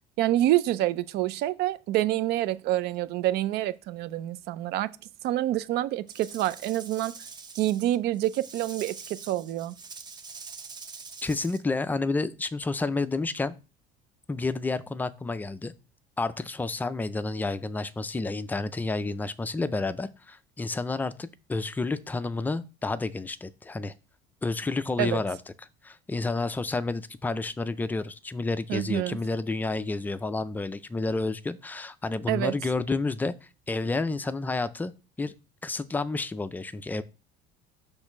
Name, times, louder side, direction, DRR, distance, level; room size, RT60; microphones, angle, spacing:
voice 1, 0.2-5.0 5.2-7.3 7.5-9.7 25.0-25.2 28.7-29.2 32.3-32.5, right 14 dB, 60° right, 0.5 m, -27 dB
Rattle / Rattle (instrument), 6.1-11.6, right 5 dB, 25° right, 0.7 m, -45 dB
voice 2, 11.2-13.6 14.3-15.7 16.2-23.9 24.4-25.4 25.8-33.3 33.7-34.9 35.2-35.3 35.6-37.0, left 3 dB, 10° left, 0.3 m, -30 dB
6.3 x 3.2 x 5.9 m
cardioid pair, 150°, 19 cm